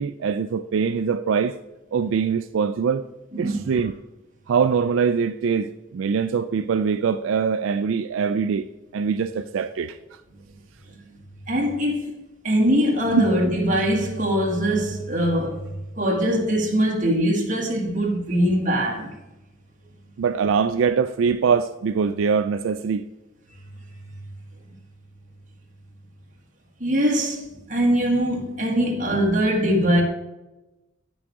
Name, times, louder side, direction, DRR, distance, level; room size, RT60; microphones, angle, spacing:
voice 1, 0.0-1.6 1.9-3.1 3.4-3.9 4.5-8.6 8.9-10.0 13.1-13.2 20.2-23.1, right 6 dB, 80° right, 0.3 m, -23 dB
voice 2, 11.5-12.1 12.4-15.7 16.0-19.1 26.8-30.0, equal, 40° right, 1.7 m, -22 dB
9.6 x 6.2 x 4.7 m
head